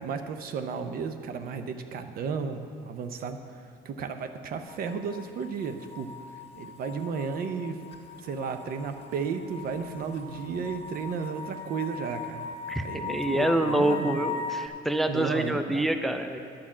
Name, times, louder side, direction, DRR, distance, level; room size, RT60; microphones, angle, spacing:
voice 1, 0.0-3.4 3.8-6.1 6.6-7.8 8.2-12.5 12.8-14.2 15.1-15.9, right 5 dB, 60° right, 8 dB, 0.7 m, -33 dB
sound 1, 4.7-14.7, left 4 dB, 35° left, 1.4 m, -39 dB
voice 2, 12.7-16.4, right 1 dB, ahead, 8 dB, 0.4 m, -27 dB
10.0 x 5.9 x 7.3 m, 2.4 s
cardioid pair, 110°, 17 cm